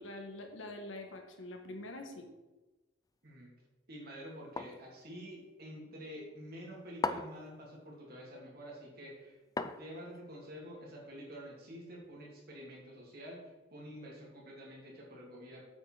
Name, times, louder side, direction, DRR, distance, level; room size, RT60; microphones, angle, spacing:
voice 1, 0.0-2.3, left 1 dB, 85° left, 4 dB, 1.6 m, -45 dB
voice 2, 3.9-13.4 13.7-15.6, equal, 50° right, -3 dB, 2.9 m, -48 dB
sound 1, 4.6-4.9 7.0-7.5 9.6-10.2, left 3 dB, 20° left, 0.3 m, -36 dB
8.1 x 5.5 x 6.0 m, 1.1 s
head